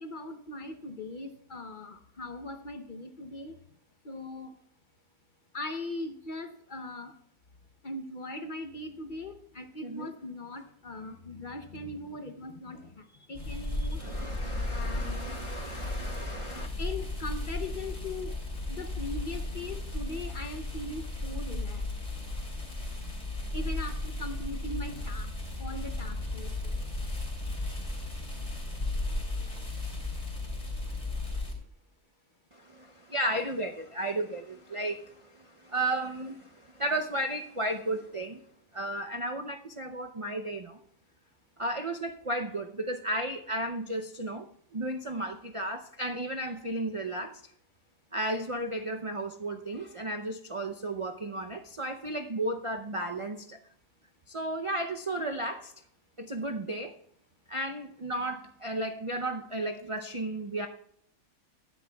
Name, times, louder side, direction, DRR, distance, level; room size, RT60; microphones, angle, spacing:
voice 1, 0.0-3.6 4.0-4.5 5.5-7.1 7.8-14.3 14.7-15.3 16.8-18.4 18.7-21.9 23.5-25.3 25.6-26.7, left 2 dB, 45° left, 0.8 m, -40 dB
voice 2, 9.8-10.1 14.0-16.7 32.5-38.4 38.7-40.8 41.6-44.5 44.7-47.5 48.1-53.6 54.3-55.7 56.2-57.0 57.5-60.7, right 1 dB, 45° right, 0.4 m, -34 dB
sound 1, 13.3-31.5, left 2 dB, 25° left, 3.1 m, -35 dB
19.5 x 10.5 x 2.3 m
omnidirectional pair, 1.5 m